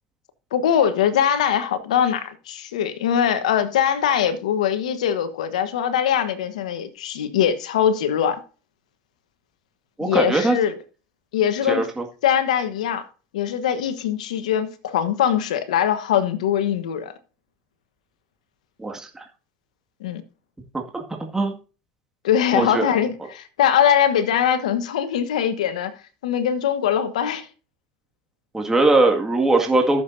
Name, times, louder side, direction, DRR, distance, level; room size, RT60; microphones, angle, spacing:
voice 1, 0.5-8.4 10.0-10.8 11.3-11.9 12.2-13.1 13.3-17.1 20.0-20.2 22.2-25.9 26.2-27.5, left 9 dB, 85° left, 1.3 m, -22 dB
voice 2, 10.0-10.6 11.7-12.0 18.8-19.2 20.9-21.0 21.3-21.5 22.5-22.9 28.5-30.0, right 2 dB, 10° right, 2.0 m, -20 dB
14.5 x 7.3 x 2.7 m
hypercardioid pair, 90°, 4 cm